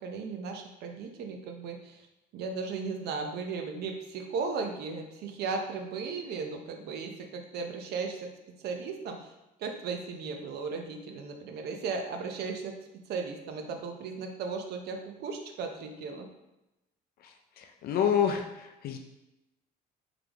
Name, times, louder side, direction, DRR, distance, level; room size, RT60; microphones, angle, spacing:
voice 1, 0.0-2.1 2.3-8.3 8.6-12.7 13.1-16.3, right 4 dB, 75° right, 4 dB, 0.7 m, -36 dB
voice 2, 17.6-19.0, left 8 dB, 65° left, 5 dB, 0.5 m, -28 dB
3.8 x 3.4 x 3.4 m, 0.95 s
cardioid pair, 110°, 17 cm